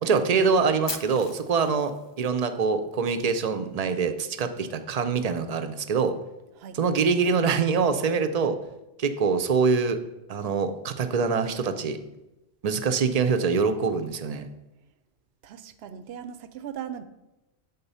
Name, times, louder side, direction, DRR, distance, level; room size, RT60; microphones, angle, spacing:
voice 1, 0.0-6.1 6.7-8.6 9.0-10.0 10.3-12.0 12.6-14.5, right 5 dB, 45° right, 8 dB, 0.6 m, -24 dB
Fire, 0.9-2.9, left 4 dB, 35° left, 0.4 m, -39 dB
voice 2, 15.4-17.0, right 9 dB, 75° right, 12 dB, 0.8 m, -38 dB
8.1 x 3.9 x 5.5 m, 0.98 s
omnidirectional pair, 1.1 m